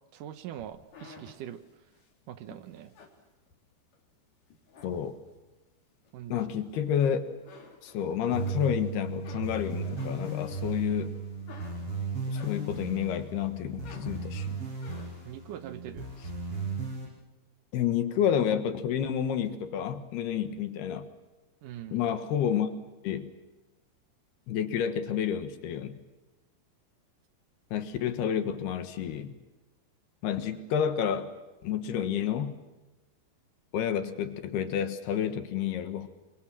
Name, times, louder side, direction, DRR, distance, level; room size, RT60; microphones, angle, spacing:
voice 1, 0.1-1.6 2.3-2.9 6.1-6.4 15.3-16.1 21.6-22.0, right 11 dB, 75° right, 11 dB, 2.0 m, -42 dB
sound 1, 0.6-4.0 4.4-5.5 6.0-7.0 7.3-8.6 8.9-13.0 13.4-15.4, left 4 dB, 50° left, 4.9 m, -53 dB
voice 2, 4.8-5.1 6.3-7.2 7.8-11.1 12.3-14.6 17.7-21.1 21.9-22.8 23.0-23.3 24.5-26.0 27.7-29.3 30.2-31.3 31.6-32.6 33.7-36.1, left 9 dB, 70° left, 9 dB, 3.3 m, -30 dB
sound 2, 8.3-17.1, right 3 dB, 30° right, 8.6 m, -36 dB
28.5 x 23.5 x 7.5 m, 1.1 s
omnidirectional pair, 4.9 m